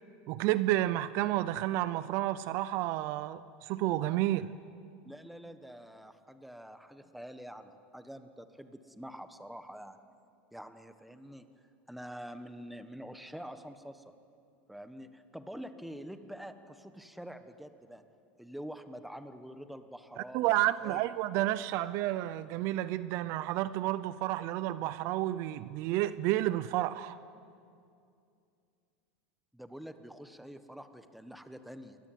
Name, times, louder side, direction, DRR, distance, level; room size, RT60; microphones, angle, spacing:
voice 1, 0.3-4.5 20.2-27.2, right 15 dB, 50° right, 15 dB, 0.7 m, -31 dB
voice 2, 5.0-10.0 10.5-11.5 11.9-14.1 14.7-18.0 18.4-20.5 20.8-21.1 29.5-32.0, equal, ahead, 9 dB, 1.3 m, -46 dB
27.5 x 22.0 x 9.4 m, 2.5 s
supercardioid pair, 150°, 6 cm